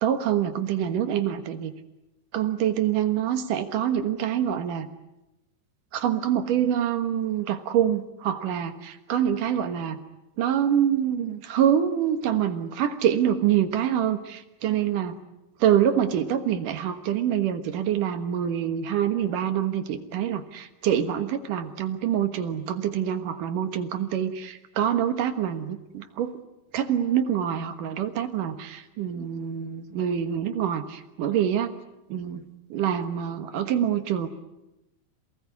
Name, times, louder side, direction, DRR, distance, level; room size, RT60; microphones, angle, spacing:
voice 1, 0.0-1.7 2.3-4.9 5.9-10.0 10.4-15.2 15.6-26.4 26.7-31.7 32.1-32.4 32.7-34.3, right 9 dB, 70° right, 8 dB, 2.9 m, -25 dB
28.0 x 19.0 x 9.7 m, 0.97 s
omnidirectional pair, 4.0 m